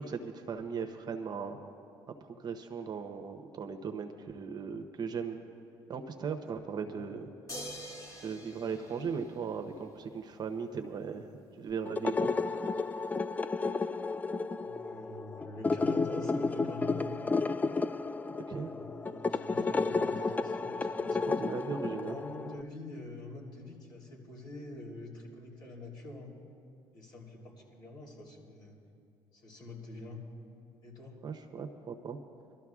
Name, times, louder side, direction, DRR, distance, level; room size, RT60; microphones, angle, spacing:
voice 1, 0.0-1.6 2.2-5.4 5.9-7.3 8.2-11.3 11.6-12.3 18.3-18.7 21.2-22.2 31.2-32.2, right 6 dB, 45° right, 5 dB, 0.9 m, -38 dB
sound 1, 7.5-10.0 11.7-11.8, equal, 30° left, 1.7 m, -45 dB
sound 2, 11.9-22.6, left 3 dB, 15° left, 0.3 m, -32 dB
voice 2, 14.6-17.2 18.6-21.3 21.9-26.3 26.9-28.8 29.3-30.2 30.8-31.1, left 2 dB, 50° left, -3 dB, 3.5 m, -45 dB
25.5 x 13.0 x 2.4 m, 2.5 s
supercardioid pair, 80°, 10 cm